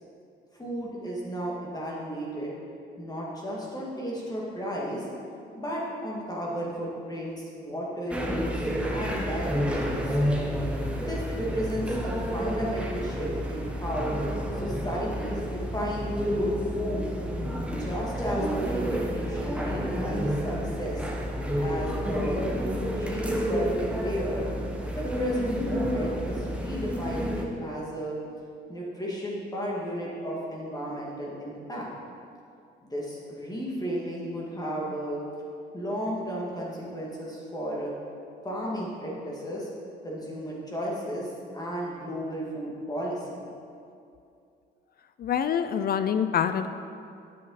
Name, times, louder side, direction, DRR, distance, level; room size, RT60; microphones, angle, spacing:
voice 1, 0.5-2.5 3.0-5.0 5.5-10.3 11.0-14.1 14.6-17.1 17.8-21.0 21.6-22.4 23.0-24.5 25.0-28.2 28.7-31.9 32.8-35.2 35.7-37.9 38.4-39.7 40.0-43.4, equal, 20° left, -5 dB, 2.0 m, -33 dB
sound 1, 8.1-27.4, equal, 5° right, 1.0 m, -30 dB
voice 2, 45.2-46.7, left 8 dB, 50° left, 11 dB, 0.4 m, -26 dB
8.9 x 7.6 x 4.0 m, 2.5 s
cardioid pair, 90°, 20 cm